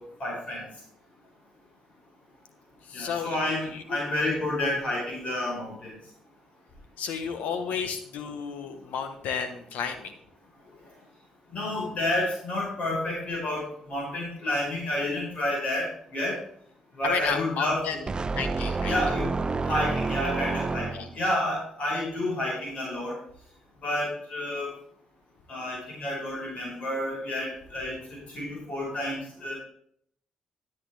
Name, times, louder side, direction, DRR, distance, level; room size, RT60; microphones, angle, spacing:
voice 1, 0.2-0.6 2.9-5.9 11.5-15.8 16.1-16.4 17.0-18.0 18.8-19.3 19.7-20.9 21.1-23.1 23.8-24.7 25.5-29.6, left 1 dB, 55° left, -3 dB, 5.0 m, -30 dB
voice 2, 2.9-3.8 7.0-10.1 17.0-18.0 18.3-18.9 20.9-21.1, left 6 dB, 75° left, 8 dB, 1.3 m, -32 dB
sound 1, 18.1-21.3, right 3 dB, 35° right, 0.6 m, -29 dB
12.5 x 8.4 x 3.5 m, 0.64 s
hypercardioid pair, 45°, 3 cm